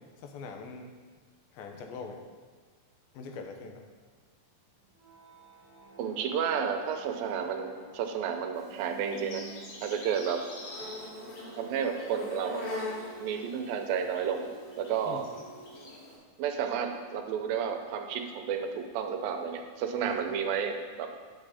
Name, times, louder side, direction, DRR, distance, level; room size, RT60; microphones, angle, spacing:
voice 1, 0.2-0.9 1.5-2.2 3.1-3.8 15.1-15.2 20.1-20.2, left 4 dB, 90° left, 3 dB, 2.7 m, -42 dB
sound 1, 4.7-16.0, right 5 dB, 40° right, 1.2 m, -50 dB
voice 2, 6.0-9.5 9.8-10.4 11.6-12.6 13.2-14.5 14.8-15.3 16.4-21.1, right 7 dB, 85° right, 5 dB, 2.5 m, -31 dB
Insect, 8.5-16.2, left 2 dB, 70° left, 3.3 m, -43 dB
8.8 x 7.8 x 4.2 m, 1.5 s
omnidirectional pair, 4.0 m